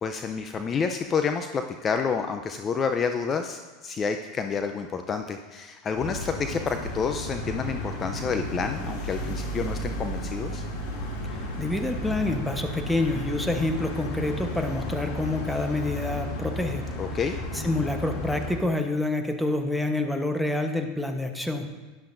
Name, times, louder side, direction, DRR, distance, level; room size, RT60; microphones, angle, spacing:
voice 1, 0.0-10.6 17.0-17.3, left 5 dB, 30° left, 6 dB, 0.6 m, -29 dB
sound 1, 6.0-18.6, left 1 dB, 60° left, 2.6 m, -33 dB
voice 2, 11.3-16.9 17.5-21.7, left 2 dB, 5° left, 5 dB, 1.1 m, -27 dB
12.5 x 10.5 x 2.6 m, 1.2 s
hypercardioid pair, 90°, 0 cm